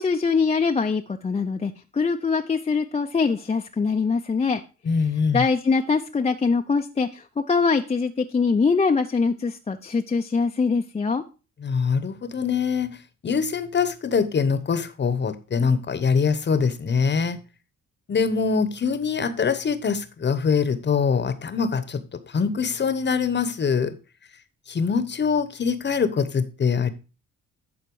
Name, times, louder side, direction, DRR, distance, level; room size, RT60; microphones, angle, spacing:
voice 1, 0.0-4.6 5.3-11.2, left 4 dB, 20° left, 0.6 m, -23 dB
voice 2, 4.8-5.5 11.6-13.0 13.2-17.4 18.1-23.9 24.7-26.9, left 5 dB, 35° left, 1.0 m, -23 dB
11.0 x 4.4 x 4.7 m
cardioid pair, 90°, 30 cm